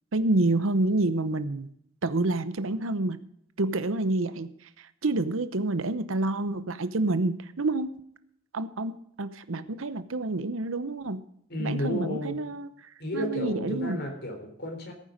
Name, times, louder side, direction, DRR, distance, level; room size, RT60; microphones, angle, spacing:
voice 1, 0.1-1.7 2.0-3.2 3.6-4.5 4.8-7.9 8.5-11.2 11.6-14.0, right 2 dB, 75° right, 13 dB, 0.9 m, -28 dB
voice 2, 11.5-12.4 13.0-14.9, equal, 55° left, 4 dB, 3.7 m, -32 dB
15.5 x 9.2 x 5.1 m, 0.71 s
head